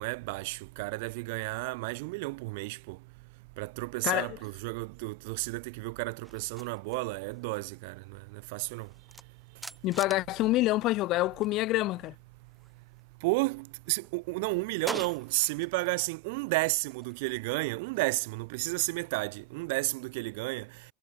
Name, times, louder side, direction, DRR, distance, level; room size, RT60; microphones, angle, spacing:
voice 1, 0.0-3.0 3.6-8.9 13.2-20.7, right 26 dB, 70° right, 6.1 m, -32 dB
voice 2, 4.0-4.4 9.8-12.1, left 17 dB, 50° left, 7.7 m, -27 dB
sound 1, 6.2-11.6 11.8-13.5 13.9-16.0 16.3-19.1, right 2 dB, 5° right, 6.5 m, -47 dB
supercardioid pair, 130°, 0 cm